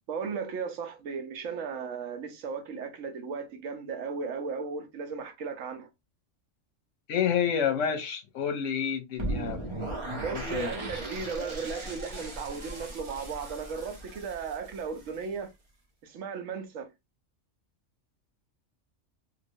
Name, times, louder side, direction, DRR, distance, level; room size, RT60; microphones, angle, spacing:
voice 1, 0.1-5.9 10.2-15.5 16.0-16.9, right 5 dB, 90° right, 1.1 m, -36 dB
voice 2, 7.1-9.9 10.3-10.7, left 8 dB, 75° left, 1.0 m, -29 dB
sound 1, 9.2-15.2, right 1 dB, 25° right, 0.9 m, -37 dB
3.1 x 2.6 x 2.6 m
omnidirectional pair, 1.3 m